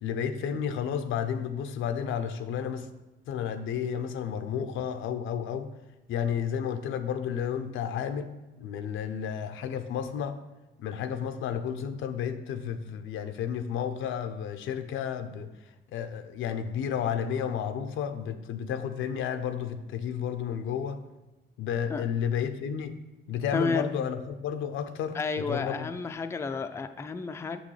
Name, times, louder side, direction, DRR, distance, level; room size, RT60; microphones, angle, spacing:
voice 1, 0.0-2.9 3.3-5.7 6.1-8.3 8.6-10.4 10.8-15.5 15.9-21.0 21.6-23.0 23.3-25.9, left 8 dB, 80° left, 9 dB, 0.5 m, -32 dB
voice 2, 23.5-23.9 25.1-27.6, left 4 dB, 15° left, 8 dB, 0.3 m, -31 dB
6.4 x 6.1 x 3.2 m, 1.0 s
cardioid pair, 90°, 20 cm